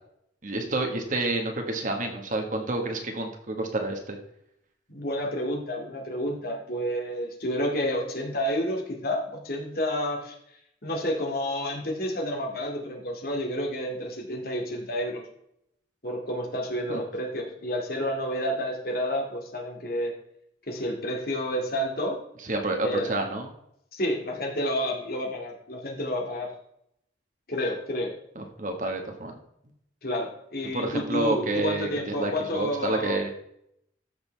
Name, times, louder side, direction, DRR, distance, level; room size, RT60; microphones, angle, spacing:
voice 1, 0.4-4.2 16.9-17.0 22.4-23.5 28.3-29.3 30.6-33.3, right 2 dB, 45° right, 3 dB, 1.6 m, -29 dB
voice 2, 4.9-10.3 10.8-15.2 16.0-20.1 20.7-22.2 22.8-23.2 23.9-26.5 27.5-28.1 30.0-33.2, equal, 55° left, 1 dB, 2.3 m, -30 dB
13.5 x 6.6 x 3.4 m, 0.75 s
head